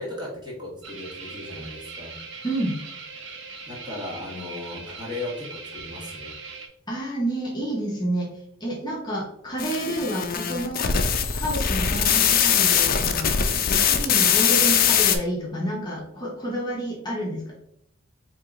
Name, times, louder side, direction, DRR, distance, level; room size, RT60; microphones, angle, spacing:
voice 1, 0.0-2.2 3.7-6.4, left 2 dB, 20° right, -4 dB, 1.5 m, -36 dB
sound 1, 0.8-6.7, right 4 dB, 60° right, 0.8 m, -40 dB
voice 2, 2.4-2.8 6.9-8.3 8.6-10.8 11.3-13.4 13.7-17.6, right 1 dB, 20° left, -4 dB, 1.0 m, -29 dB
sound 2, 9.6-15.2, left 8 dB, 45° left, 0.5 m, -21 dB
4.7 x 3.0 x 3.7 m, 0.72 s
head